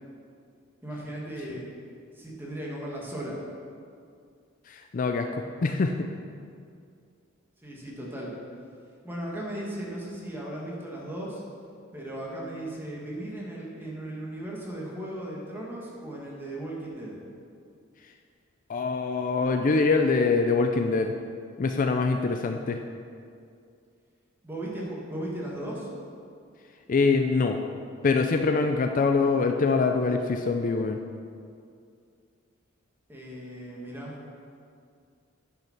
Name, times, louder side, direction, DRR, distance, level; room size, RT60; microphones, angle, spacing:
voice 1, 0.8-1.7 2.2-3.4 7.6-8.3 9.0-11.4 11.9-17.2 24.4-25.9 33.1-34.2, right 1 dB, 10° right, -4 dB, 1.7 m, -36 dB
voice 2, 4.7-6.1 18.7-21.1 21.6-22.8 26.9-27.6 28.0-31.0, left 4 dB, 40° left, 5 dB, 0.4 m, -24 dB
9.2 x 5.7 x 5.9 m, 2.3 s
head